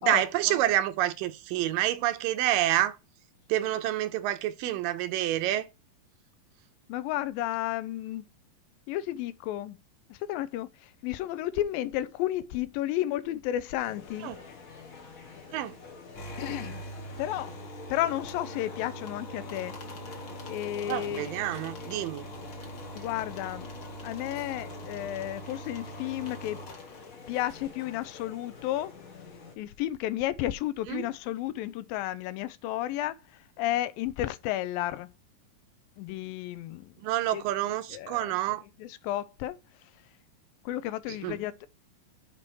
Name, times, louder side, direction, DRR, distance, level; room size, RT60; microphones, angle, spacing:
voice 1, 0.0-3.0 3.5-5.7 14.2-14.4 15.5-15.8 20.9-22.3 30.9-31.1 37.0-38.6 41.1-41.4, right 13 dB, 80° right, 2.2 m, -28 dB
voice 2, 6.9-8.2 8.9-9.8 10.3-10.7 11.0-14.3 16.4-16.8 17.2-17.5 17.9-19.7 20.4-21.4 23.0-23.7 24.0-26.6 27.3-28.9 29.6-33.2 33.6-35.1 36.0-36.9 37.3-37.4 37.9-38.3 38.8-39.6 40.7-41.7, left 13 dB, 85° left, 2.4 m, -32 dB
sound 1, 13.8-29.6, left 4 dB, 60° left, 0.8 m, -47 dB
sound 2, 16.1-27.5, right 1 dB, 40° left, 1.9 m, -43 dB
6.7 x 5.3 x 6.1 m
omnidirectional pair, 4.1 m